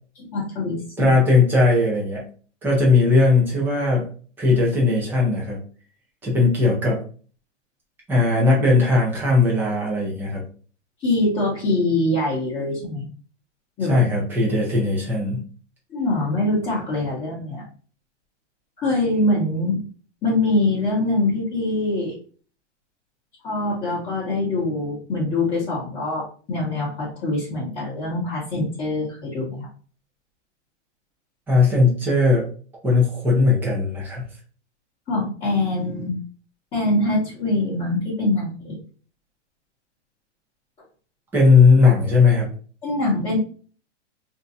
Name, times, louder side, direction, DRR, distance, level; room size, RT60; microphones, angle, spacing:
voice 1, 0.2-1.1 11.0-13.1 13.8-14.0 15.9-17.6 18.8-19.8 20.2-22.1 23.4-29.7 35.1-36.2 36.7-38.8 42.8-43.4, left 2 dB, 15° left, -9 dB, 0.8 m, -24 dB
voice 2, 1.0-2.3 2.6-4.1 4.4-5.6 6.2-7.0 8.1-10.4 13.9-15.4 31.5-32.5 32.8-34.2 41.3-42.5, left 3 dB, 5° right, -4 dB, 0.5 m, -18 dB
2.6 x 2.2 x 3.9 m, 0.41 s
supercardioid pair, 160°, 36 cm